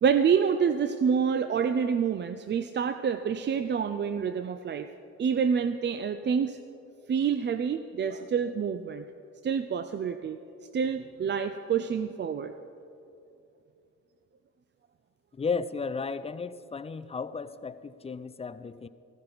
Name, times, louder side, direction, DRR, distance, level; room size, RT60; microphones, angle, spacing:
voice 1, 0.0-4.9 5.2-6.6 7.1-9.0 9.4-10.4 10.7-12.5, right 7 dB, 35° right, 10 dB, 0.5 m, -27 dB
voice 2, 15.3-18.9, left 5 dB, 20° left, 14 dB, 0.5 m, -34 dB
16.0 x 13.0 x 4.0 m, 2.6 s
cardioid pair, 90°, 30 cm